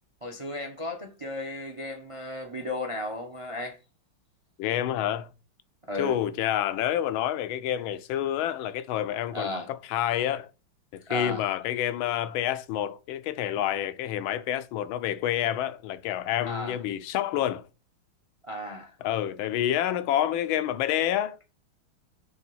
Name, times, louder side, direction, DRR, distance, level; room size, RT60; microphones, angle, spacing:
voice 1, 0.2-3.8 5.9-6.1 9.3-9.7 11.1-11.4 16.4-16.8 18.4-18.9, left 1 dB, 35° right, 0.5 m, -34 dB
voice 2, 4.6-5.3 6.0-10.5 10.9-17.7 19.0-21.4, left 11 dB, 80° left, 1.4 m, -28 dB
7.2 x 3.5 x 6.1 m
omnidirectional pair, 2.3 m